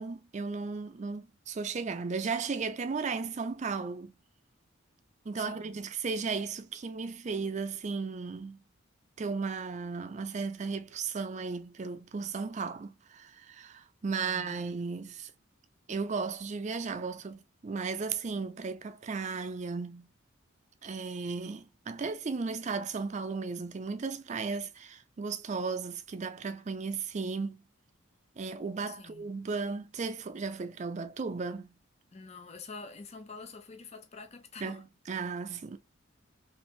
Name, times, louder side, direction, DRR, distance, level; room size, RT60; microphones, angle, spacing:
voice 1, 0.0-4.1 5.3-8.6 9.2-15.3 15.9-20.1 20.8-27.6 28.4-31.7 34.6-35.8, right 4 dB, 35° right, 0.4 m, -35 dB
voice 2, 5.4-5.8 14.2-14.6 28.9-29.3 32.1-34.8, left 4 dB, 30° left, 0.6 m, -47 dB
3.2 x 2.6 x 2.4 m
head